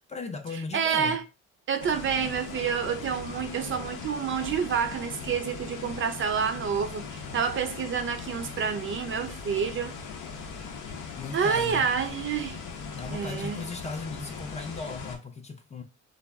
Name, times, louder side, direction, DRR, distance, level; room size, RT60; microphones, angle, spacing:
voice 1, 0.1-1.2 11.2-11.9 12.9-15.8, left 4 dB, 25° left, 0.4 m, -37 dB
voice 2, 0.7-1.2 1.7-9.9 11.3-12.6 13.1-13.6, right 7 dB, 40° right, 0.4 m, -28 dB
sound 1, 1.8-15.2, left 5 dB, 85° left, 0.6 m, -40 dB
2.3 x 2.0 x 3.4 m
cardioid pair, 90°, 30 cm